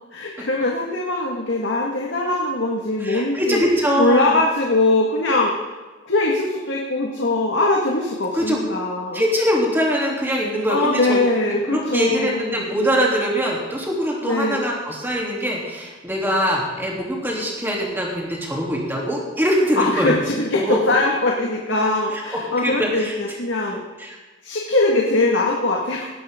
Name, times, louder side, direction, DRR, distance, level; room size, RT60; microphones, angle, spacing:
voice 1, 0.1-3.6 4.0-5.5 6.1-9.3 10.7-12.4 14.2-14.6 19.8-23.8 24.4-26.1, left 2 dB, 80° left, -2 dB, 1.8 m, -21 dB
voice 2, 3.0-4.3 8.3-8.7 9.1-11.4 11.7-20.1 20.5-20.8 22.1-22.2 22.6-23.1 24.0-24.2, equal, 10° right, -3 dB, 3.1 m, -22 dB
18.5 x 12.5 x 3.8 m, 1.2 s
head